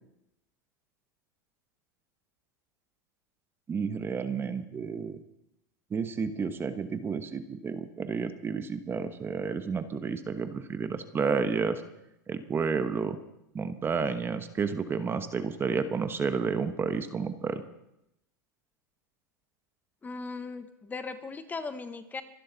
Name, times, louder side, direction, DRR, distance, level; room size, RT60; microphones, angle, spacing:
voice 1, 3.7-5.2 5.9-11.8 12.3-13.2 13.5-17.6, right 5 dB, 20° right, 10 dB, 1.2 m, -31 dB
voice 2, 20.0-22.2, left 4 dB, 15° left, 10 dB, 1.1 m, -38 dB
25.0 x 11.5 x 4.0 m, 0.85 s
hypercardioid pair, 115°, 11 cm